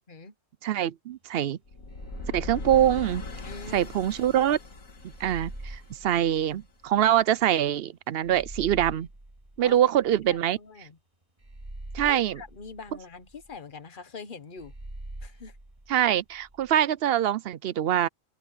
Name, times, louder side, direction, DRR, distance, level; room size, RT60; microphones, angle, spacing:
voice 1, 0.6-1.6 2.3-3.2 3.7-4.6 5.2-9.1 9.6-10.6 11.9-12.4 15.9-18.1, right 11 dB, 60° right, 0.7 m, -24 dB
sound 1, 1.7-6.7, left 3 dB, 80° left, 2.8 m, -40 dB
sound 2, 1.9-4.1 5.1-7.2 8.2-10.6 11.4-13.6 14.6-16.7, right 1 dB, 25° right, 2.3 m, -44 dB
voice 2, 3.4-3.9 9.6-9.8 10.3-11.0 12.0-14.7 15.2-15.6, left 4 dB, 40° left, 1.3 m, -43 dB
open air
omnidirectional pair, 1.4 m